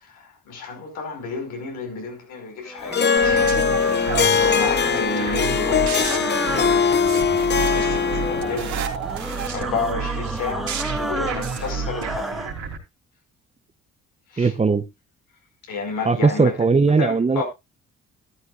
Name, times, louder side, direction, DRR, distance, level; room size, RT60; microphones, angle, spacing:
voice 1, 0.0-3.5 3.9-6.5 7.7-12.4 14.3-14.5 15.7-16.5 17.0-17.4, left 4 dB, 85° left, 5.2 m, -31 dB
sound 1, 2.6-12.6, equal, ahead, 1.5 m, -33 dB
Harp, 2.9-8.7, left 6 dB, 35° left, 0.7 m, -21 dB
sound 2, 3.2-12.8, right 6 dB, 70° right, 3.3 m, -30 dB
voice 2, 14.4-14.8 16.0-17.4, right 4 dB, 20° right, 0.7 m, -18 dB
13.0 x 13.0 x 2.4 m
cardioid pair, 90°, 30 cm